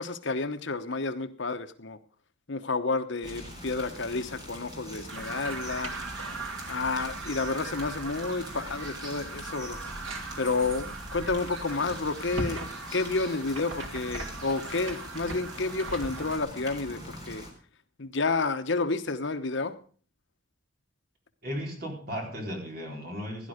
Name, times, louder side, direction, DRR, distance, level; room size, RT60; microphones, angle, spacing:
voice 1, 0.0-2.0 2.5-5.9 6.7-9.8 10.4-17.5 18.0-19.8, left 3 dB, 65° left, 9 dB, 1.1 m, -30 dB
sound 1, 3.2-17.5, equal, 20° right, 3.6 m, -44 dB
sound 2, 5.1-16.4, right 3 dB, 80° right, 2.2 m, -39 dB
voice 2, 21.4-23.5, equal, 45° right, 1 dB, 4.3 m, -35 dB
16.5 x 11.0 x 5.1 m, 0.42 s
head